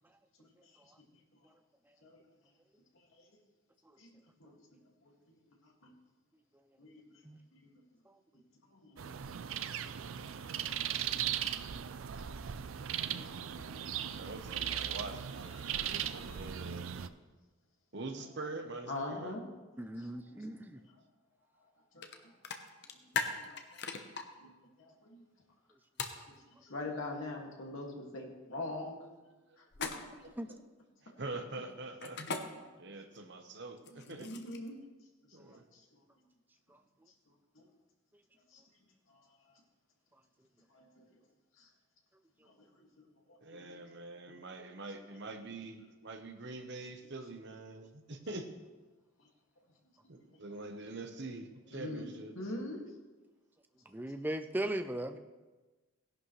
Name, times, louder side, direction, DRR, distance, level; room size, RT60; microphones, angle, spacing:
voice 1, 0.4-0.9 1.3-1.4 2.0-2.2 2.9-3.3 4.0-4.6 5.0-5.1 5.6-5.9 6.8-7.2 7.5-7.8 8.7-9.1 10.1-10.6 11.1-11.4 11.8-12.1 13.0-14.1 15.6-16.5 17.0-17.1 18.9-19.5 19.9-21.0 21.6-22.4 22.9-23.8 24.4-24.5 24.8-25.2 26.2-29.0 29.6-29.7 33.9-34.8 35.3-35.4 35.7-36.0 37.3-37.7 38.5-38.6 39.1-39.6 40.7-41.1 41.6-41.7 42.4-43.8 44.3-44.7 49.2-49.3 50.7-50.8 51.7-52.1 52.4-52.8 54.1-54.2, left 2 dB, 70° left, -1 dB, 2.2 m, -46 dB
sound 1, 9.0-17.1, right 9 dB, 70° right, 0.4 m, -38 dB
voice 2, 14.2-16.8 17.9-19.3 29.5-29.6 30.2-30.6 31.0-32.2 32.8-34.3 35.3-35.6 43.4-48.5 50.1-52.3, right 2 dB, 55° right, 5 dB, 1.1 m, -44 dB
voice 3, 19.8-20.8 30.4-30.5 53.9-55.2, right 1 dB, 10° right, 8 dB, 0.5 m, -37 dB
sound 2, 22.0-22.1 22.4-24.2 26.0-26.2 29.7-30.3 32.0-32.4 33.8-34.7, left 5 dB, 55° left, 1.0 m, -37 dB
17.0 x 11.0 x 3.2 m, 1.2 s
head